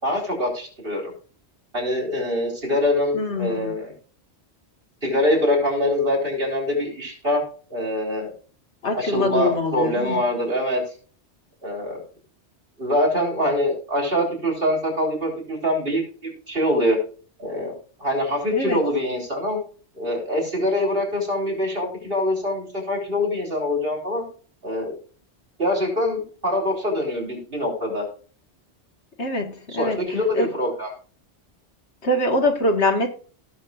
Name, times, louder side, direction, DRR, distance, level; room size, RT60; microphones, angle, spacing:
voice 1, 0.0-1.1 1.7-3.9 5.0-7.4 7.7-8.3 9.0-10.8 11.6-12.0 12.8-17.0 17.4-17.7 18.0-19.6 19.9-24.3 24.6-24.9 25.6-28.1 29.7-30.9, left 1 dB, 55° right, 0 dB, 4.7 m, -24 dB
voice 2, 3.1-3.7 8.8-10.2 18.5-18.8 29.2-30.0 30.3-30.5 32.0-33.1, left 2 dB, 75° left, 4 dB, 2.0 m, -23 dB
17.5 x 6.5 x 2.5 m, 0.42 s
omnidirectional pair, 1.2 m